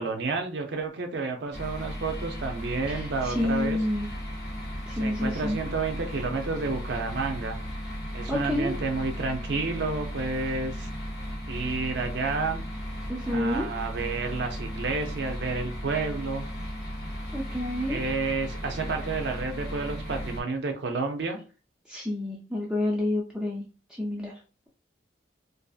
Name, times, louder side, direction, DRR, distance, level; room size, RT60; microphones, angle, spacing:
voice 1, 0.0-3.8 5.0-7.6 8.1-10.9 11.5-12.6 13.2-16.5 17.9-21.4, right 4 dB, 70° right, 4 dB, 0.5 m, -30 dB
sound 1, 1.5-20.4, equal, 55° left, 0.7 m, -36 dB
voice 2, 2.9-4.1 4.9-5.6 8.3-8.8 13.1-13.7 17.3-18.0 21.9-23.6 24.0-24.3, left 1 dB, 5° right, -3 dB, 0.3 m, -29 dB
2.6 x 2.4 x 2.3 m, 0.36 s
head